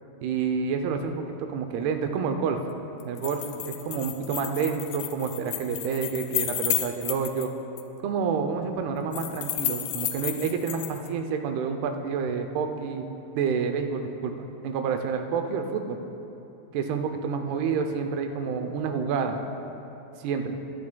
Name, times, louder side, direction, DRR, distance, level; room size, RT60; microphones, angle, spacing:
voice 1, 0.2-2.6 3.0-7.5 8.0-13.1 13.3-16.0 16.7-19.4 20.2-20.6, right 6 dB, 85° right, 5 dB, 2.6 m, -29 dB
sound 1, 3.0-7.5 7.8-7.9 9.1-11.1, left 12 dB, 85° left, 2.6 m, -32 dB
22.5 x 9.6 x 2.2 m, 3.0 s
omnidirectional pair, 4.6 m